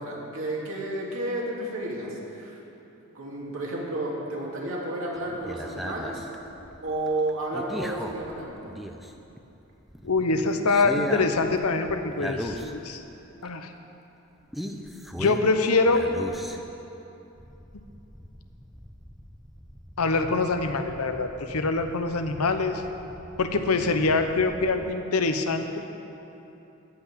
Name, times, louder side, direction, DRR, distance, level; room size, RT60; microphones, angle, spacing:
voice 1, 0.0-2.6 3.1-6.2 6.8-8.7, right 1 dB, 65° right, -4 dB, 2.9 m, -31 dB
sound 1, 5.2-9.4 9.8-13.0 13.3-13.4 14.5-15.6 15.9-16.9 17.4-24.9, equal, ahead, 0.6 m, -39 dB
voice 2, 10.0-13.0 13.4-13.7 15.2-16.1 20.0-22.8 23.4-25.8, left 3 dB, 90° left, 7 dB, 0.9 m, -24 dB
14.5 x 5.9 x 10.0 m, 2.9 s
head